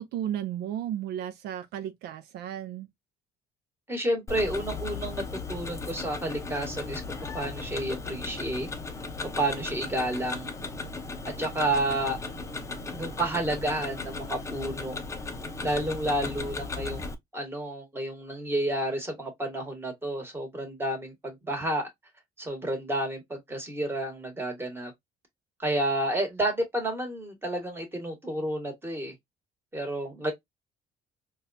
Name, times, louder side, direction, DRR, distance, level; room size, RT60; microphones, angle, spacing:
voice 1, 0.0-2.9, right 11 dB, 75° right, 0.4 m, -34 dB
voice 2, 3.9-5.2 5.5-7.0 7.3-8.7 9.2-10.5 11.2-12.2 12.9-15.0 15.6-17.0 17.3-21.9 22.4-24.9 25.6-29.1 29.7-30.3, right 1 dB, 15° right, 1.5 m, -30 dB
Tick-tock, 4.3-17.1, left 4 dB, 15° left, 0.6 m, -36 dB
4.1 x 2.3 x 2.5 m
cardioid pair, 110°, 17 cm